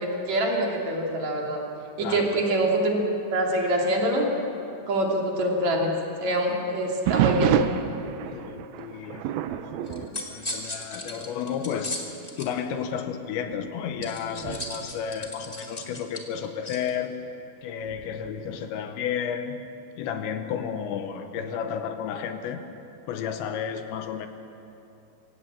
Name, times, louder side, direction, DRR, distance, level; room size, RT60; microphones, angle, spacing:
voice 1, 0.0-1.6 2.0-3.0 3.3-4.3 4.9-5.9 6.2-7.6, right 1 dB, 45° right, 0 dB, 3.4 m, -25 dB
voice 2, 2.0-2.3 8.3-12.0 12.4-17.2 17.6-19.6 20.0-22.6 23.1-24.3, left 8 dB, 80° left, 7 dB, 3.2 m, -32 dB
sound 1, 7.1-11.2 11.5-11.9 12.5-12.6 13.3-16.0 17.9-18.4, right 11 dB, 85° right, 2.1 m, -29 dB
sound 2, 9.9-12.5 14.0-16.9, left 1 dB, 55° left, 0.4 m, -37 dB
25.0 x 16.0 x 8.8 m, 2.8 s
omnidirectional pair, 5.3 m